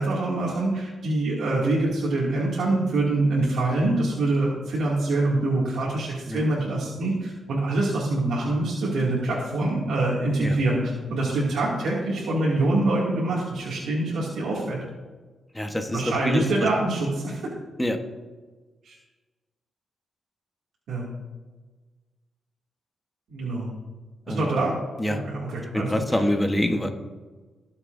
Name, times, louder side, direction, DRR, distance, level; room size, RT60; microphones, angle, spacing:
voice 1, 0.0-14.8 15.9-17.4 18.8-19.0 20.9-21.1 23.3-23.7 24.3-24.7 25.1-26.2, right 2 dB, 85° right, -6 dB, 2.4 m, -25 dB
voice 2, 15.5-16.4 17.8-18.0 24.3-24.6 25.0-25.2 25.7-26.9, left 1 dB, 10° left, 5 dB, 1.1 m, -25 dB
20.0 x 7.1 x 2.6 m, 1.3 s
cardioid pair, 110°, 0 cm